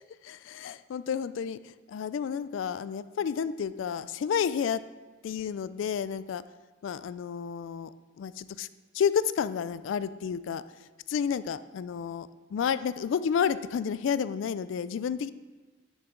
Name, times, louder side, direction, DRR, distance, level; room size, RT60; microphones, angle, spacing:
voice 1, 0.2-4.8 5.2-6.4 6.8-8.7 8.9-10.6 11.1-15.3, left 7 dB, 70° left, 16 dB, 0.3 m, -31 dB
9.8 x 6.9 x 3.8 m, 1.2 s
head